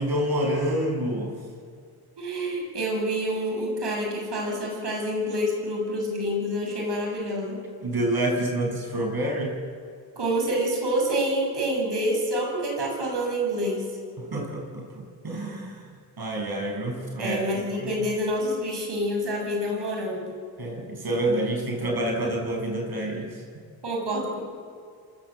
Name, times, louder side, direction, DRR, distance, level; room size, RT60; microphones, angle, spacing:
voice 1, 0.0-1.4 7.8-9.5 14.2-15.9 16.2-17.4 17.8-18.0 20.6-23.4, right 1 dB, 65° right, 1 dB, 7.4 m, -28 dB
voice 2, 2.2-7.6 10.2-13.8 17.2-20.3 23.8-24.4, equal, 80° right, 0 dB, 7.3 m, -27 dB
26.5 x 24.0 x 7.8 m, 2.3 s
cardioid pair, 55°, 40 cm